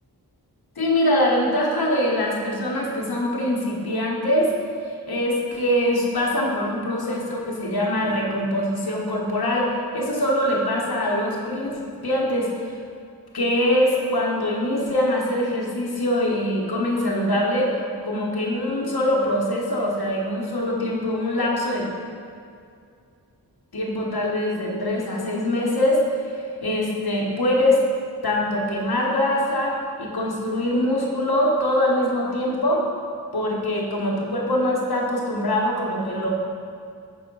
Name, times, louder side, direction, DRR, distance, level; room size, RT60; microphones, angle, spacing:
voice 1, 0.8-4.5 4.8-12.7 13.3-21.9 23.7-27.8 28.2-32.9 33.3-36.3, left 1 dB, 65° left, -2 dB, 1.2 m, -23 dB
5.5 x 4.1 x 5.3 m, 2.3 s
wide cardioid pair, 65°, 40 cm